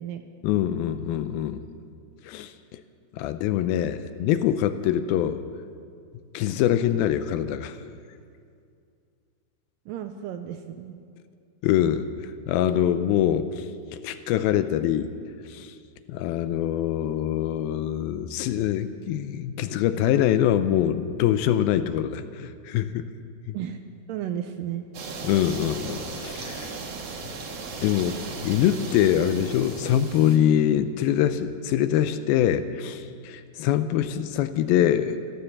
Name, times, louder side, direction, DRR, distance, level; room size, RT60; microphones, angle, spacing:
voice 1, 0.4-1.6 2.2-2.8 3.1-5.4 6.3-7.8 11.6-13.7 13.9-15.1 15.5-15.7 16.1-23.1 23.5-23.6 25.2-26.7 27.8-35.2, left 10 dB, 80° left, 11 dB, 2.4 m, -24 dB
voice 2, 9.9-11.0 23.5-23.8 24.1-24.9, right 10 dB, 80° right, 7 dB, 2.1 m, -33 dB
sound 1, 24.9-30.4, right 4 dB, 55° right, 2.1 m, -36 dB
15.0 x 13.0 x 7.2 m, 2.3 s
omnidirectional pair, 4.5 m